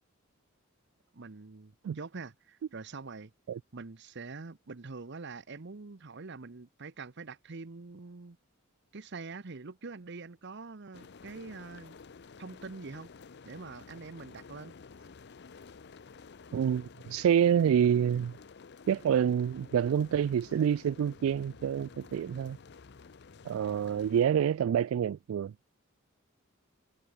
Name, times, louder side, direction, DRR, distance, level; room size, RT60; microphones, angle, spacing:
voice 1, 1.1-3.3 3.7-8.4 8.9-12.0 12.4-13.1 13.4-14.7, right 4 dB, 55° right, 0.9 m, -44 dB
sound 1, 10.9-24.2, left 5 dB, 55° left, 0.6 m, -52 dB
voice 2, 16.5-18.3 18.9-22.6 23.5-25.5, right 8 dB, 85° right, 0.3 m, -27 dB
head